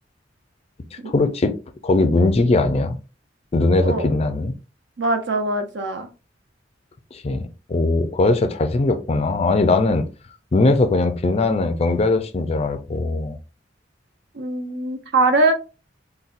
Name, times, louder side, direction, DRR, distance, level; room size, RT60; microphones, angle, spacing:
voice 1, 1.1-1.5 1.8-3.0 3.5-4.5 7.1-10.0 10.5-13.4, left 2 dB, 35° left, 8 dB, 0.4 m, -20 dB
voice 2, 3.8-4.1 5.0-6.1 14.3-15.5, right 2 dB, 65° right, 5 dB, 0.6 m, -22 dB
4.0 x 2.1 x 2.5 m, 0.32 s
head